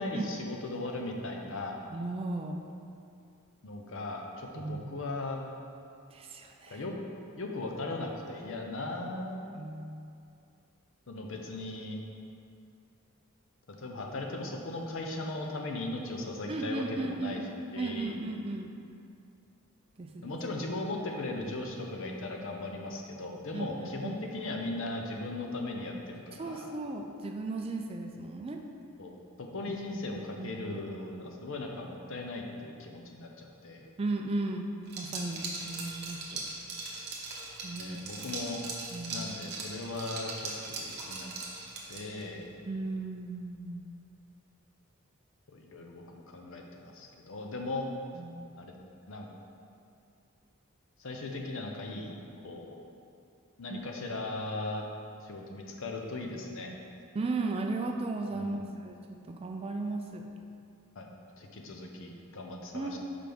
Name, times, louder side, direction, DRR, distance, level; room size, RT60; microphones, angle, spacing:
voice 1, 0.0-1.8 3.6-5.4 6.7-6.9 7.4-9.4 11.1-12.0 13.8-17.4 17.7-18.2 20.2-26.8 29.0-33.9 37.8-38.6 39.1-41.3 41.9-42.5 45.5-47.9 48.6-48.7 49.1-49.3 51.0-52.2 52.4-52.8 53.6-54.8 55.2-56.7 58.3-58.7 61.0-61.1 61.4-63.0, left 2 dB, 60° left, 1 dB, 0.7 m, -38 dB
voice 2, 1.9-2.6 4.6-4.9 6.1-6.8 9.6-10.1 16.5-17.5 17.8-18.7 20.0-20.4 23.5-23.7 24.0-24.4 26.3-28.6 30.3-30.8 34.0-36.5 37.6-38.0 38.9-39.3 42.7-43.9 48.1-48.7 53.7-53.8 57.1-58.6 58.8-60.2 62.7-63.0, right 2 dB, 25° right, 3 dB, 0.3 m, -36 dB
Liquid, 34.9-42.3, right 3 dB, 50° right, 0.9 m, -40 dB
5.9 x 5.0 x 3.5 m, 2.5 s
head